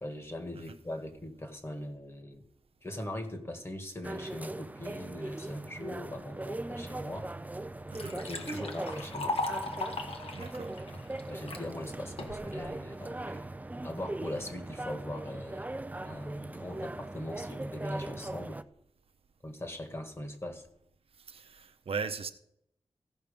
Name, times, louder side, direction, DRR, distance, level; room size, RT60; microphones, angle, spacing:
voice 1, 0.0-2.4 2.8-7.3 8.1-9.4 11.3-13.5 13.8-15.7 16.0-18.6 19.4-20.6, left 1 dB, 25° left, 1.6 m, -40 dB
sound 1, 4.0-18.6, right 2 dB, 15° right, 0.4 m, -40 dB
Liquid, 7.1-7.2 7.6-11.6 12.2-12.7, left 3 dB, 80° left, 1.4 m, -37 dB
voice 2, 10.3-10.7 21.2-22.3, right 5 dB, 75° right, 0.8 m, -38 dB
15.5 x 5.8 x 5.2 m
wide cardioid pair, 85°, 10 cm